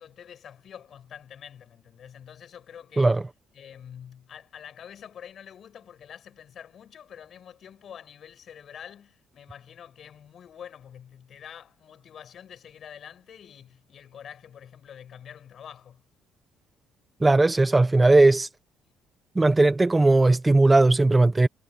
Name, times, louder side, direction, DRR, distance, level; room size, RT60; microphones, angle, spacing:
voice 1, 0.0-3.1 3.5-16.0, left 8 dB, 50° left, 6.7 m, -46 dB
voice 2, 17.2-18.5 19.3-21.5, right 2 dB, 15° right, 1.0 m, -18 dB
cardioid pair, 125°, 0 cm